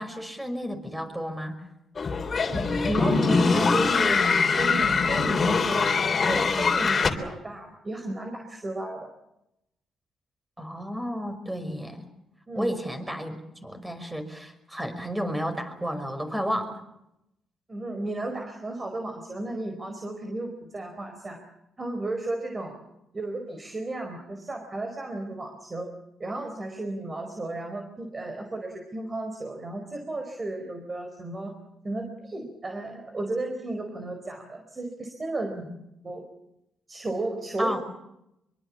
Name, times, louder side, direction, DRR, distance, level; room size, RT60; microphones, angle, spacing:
voice 1, 0.0-1.6 10.6-12.1 12.5-16.8 35.5-35.6 37.6-37.8, equal, 10° right, 7 dB, 5.6 m, -32 dB
sound 1, 2.0-7.1, left 4 dB, 40° left, 3.6 m, -23 dB
voice 2, 2.4-9.1 12.5-12.7 17.7-21.4 21.8-22.8 23.1-25.9 26.2-31.5 31.8-35.6 36.0-36.3 36.9-37.8, right 2 dB, 30° right, 4 dB, 4.6 m, -34 dB
25.0 x 23.5 x 7.3 m, 0.84 s
cardioid pair, 90°, 0 cm